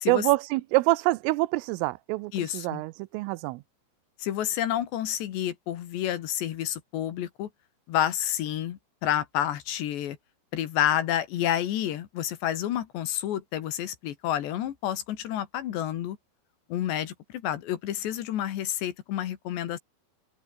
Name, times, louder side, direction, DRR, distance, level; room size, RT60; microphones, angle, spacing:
voice 1, 0.1-3.6, right 21 dB, 85° right, 3.2 m, -26 dB
voice 2, 2.3-2.8 4.2-7.5 7.9-10.2 10.5-16.2 16.7-19.8, left 11 dB, 65° left, 3.6 m, -29 dB
open air
omnidirectional pair, 5.9 m